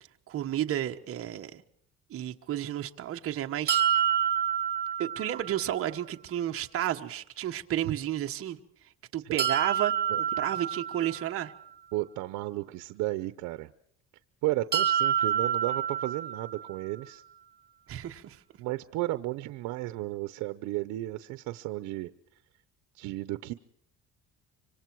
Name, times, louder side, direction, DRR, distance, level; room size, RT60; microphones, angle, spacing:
voice 1, 0.3-1.6 2.1-3.8 5.0-8.6 9.1-9.9 10.4-11.5 17.9-18.4, right 12 dB, 50° right, 5 dB, 1.4 m, -32 dB
sound 1, 3.7-5.6 9.4-11.4 14.7-16.7, right 9 dB, 35° right, 2.3 m, -28 dB
voice 2, 11.9-13.7 14.4-17.2 18.6-22.1 23.0-23.5, right 17 dB, 90° right, 12 dB, 0.9 m, -33 dB
25.5 x 25.5 x 4.7 m, 0.67 s
cardioid pair, 135°, 29 cm